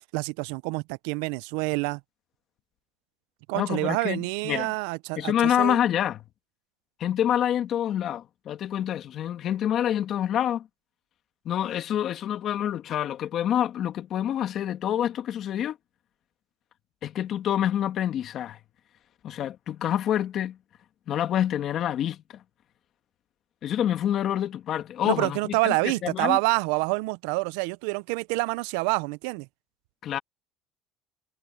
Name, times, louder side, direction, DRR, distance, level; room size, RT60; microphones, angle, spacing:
voice 1, 0.1-2.0 3.5-5.8 25.0-29.5, right 26 dB, 80° right, 0.4 m, -27 dB
voice 2, 3.5-4.7 5.2-6.2 7.0-10.7 11.5-15.8 17.0-18.6 19.2-20.6 21.1-22.4 23.6-25.8 26.0-26.4 30.0-30.2, left 10 dB, 45° left, 1.8 m, -27 dB
cardioid pair, 120°, 0 cm